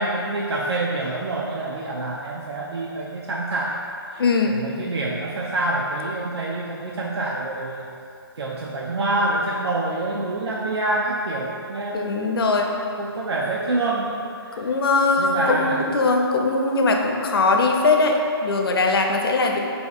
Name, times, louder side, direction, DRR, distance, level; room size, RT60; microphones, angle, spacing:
voice 1, 0.0-3.8 4.1-7.9 8.4-12.5 13.0-14.7 15.2-15.9, right 2 dB, 85° right, -4 dB, 0.4 m, -26 dB
voice 2, 4.2-4.7 11.9-12.7 14.6-19.6, left 3 dB, 65° left, 2 dB, 0.4 m, -20 dB
4.1 x 2.7 x 2.3 m, 2.6 s
hypercardioid pair, 150°, 13 cm